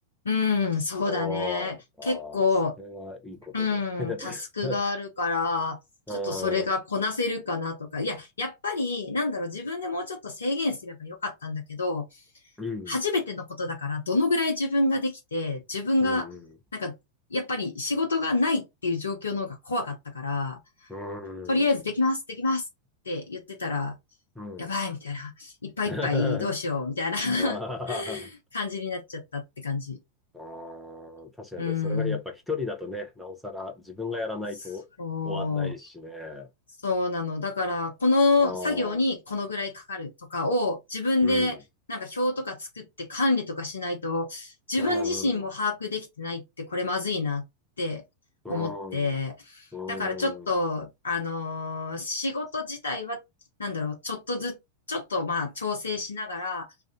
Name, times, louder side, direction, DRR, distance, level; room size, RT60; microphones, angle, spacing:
voice 1, 0.2-1.8 2.0-2.8 3.5-5.8 6.1-12.2 12.9-16.3 16.7-16.9 17.3-20.6 21.5-22.7 23.1-24.0 24.6-27.6 27.9-30.0 31.6-32.2 35.0-35.7 36.8-41.6 41.9-47.4 47.8-48.0 48.5-53.2 53.6-54.6 54.9-56.7, left 3 dB, 70° left, 0.6 m, -28 dB
voice 2, 1.0-4.8 6.1-6.7 12.6-13.0 16.0-16.5 20.9-21.8 24.3-24.7 25.9-26.8 27.2-28.3 30.3-34.8 35.2-36.5 38.4-39.0 41.2-41.5 44.8-45.5 48.4-49.2 49.7-50.5, left 2 dB, ahead, 0.8 m, -36 dB
2.5 x 2.3 x 3.6 m
figure-of-eight pair, 90°, 0 cm